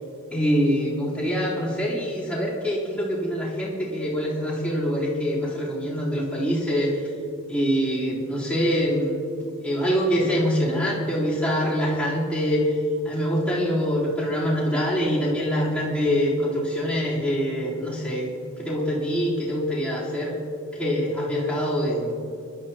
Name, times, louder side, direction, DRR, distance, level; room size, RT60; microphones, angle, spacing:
voice 1, 0.3-7.0 7.5-9.2 9.6-12.8 13.0-18.3 18.6-20.4 20.7-22.1, equal, 5° left, -9 dB, 3.6 m, -24 dB
22.5 x 12.5 x 2.9 m, 2.6 s
head